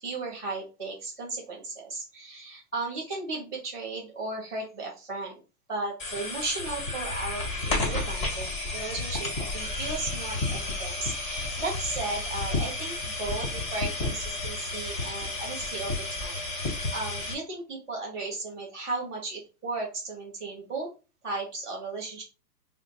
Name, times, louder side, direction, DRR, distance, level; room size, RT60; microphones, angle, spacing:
voice 1, 0.0-5.4 5.7-16.4 16.6-20.9 21.2-22.2, right 3 dB, 5° left, -16 dB, 0.4 m, -35 dB
sound 1, 6.0-17.3, left 2 dB, 30° left, 1.9 m, -32 dB
6.0 x 2.1 x 2.8 m, 0.32 s
hypercardioid pair, 160°, 50 cm